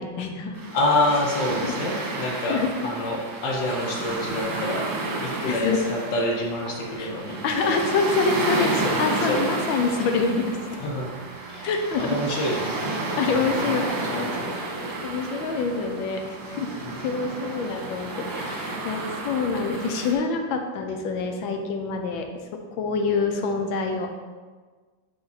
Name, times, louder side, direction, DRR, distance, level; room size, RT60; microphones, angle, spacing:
voice 1, 0.0-0.6 1.5-1.7 2.5-2.7 5.5-5.8 7.0-7.1 7.4-8.7 9.0-10.6 11.6-12.2 13.2-14.3 15.0-16.7 17.0-22.3 22.7-24.1, left 4 dB, 90° left, 4 dB, 1.5 m, -26 dB
sound 1, 0.5-20.1, right 2 dB, 70° right, 1.8 m, -31 dB
voice 2, 0.7-4.9 5.2-8.2 8.6-9.5 10.8-11.1 11.5-11.7 12.0-13.6 14.0-14.6 16.8-17.0, left 1 dB, 70° left, -1 dB, 1.7 m, -28 dB
6.0 x 4.7 x 4.1 m, 1.4 s
omnidirectional pair, 2.1 m